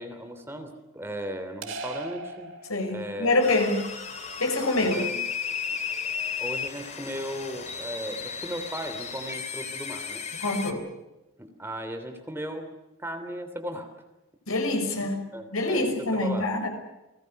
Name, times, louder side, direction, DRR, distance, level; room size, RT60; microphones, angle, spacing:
voice 1, 0.0-2.5 2.9-3.3 4.8-5.2 6.4-10.2 11.4-12.7 13.0-13.9 15.3-16.5, equal, 10° right, 6 dB, 3.1 m, -36 dB
sound 1, 1.6-3.3, right 3 dB, 60° right, 3.6 m, -38 dB
voice 2, 2.7-3.8 4.4-5.0 10.3-10.8 14.5-15.3 15.5-16.7, left 2 dB, 85° left, 5 dB, 6.1 m, -25 dB
sound 2, 3.4-10.7, left 6 dB, 30° left, 2.6 m, -34 dB
29.5 x 20.0 x 6.6 m, 0.99 s
head